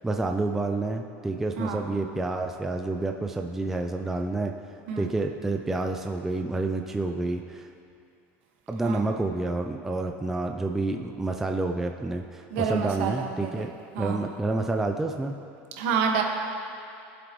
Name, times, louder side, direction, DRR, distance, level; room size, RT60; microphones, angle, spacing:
voice 1, 0.0-4.5 5.0-7.7 8.7-15.4, right 2 dB, 5° right, 3 dB, 0.3 m, -29 dB
voice 2, 12.5-13.7 13.9-14.2 15.8-16.2, right 6 dB, 65° right, 1 dB, 1.6 m, -28 dB
21.5 x 7.8 x 3.1 m, 2.6 s
cardioid pair, 175°, 7 cm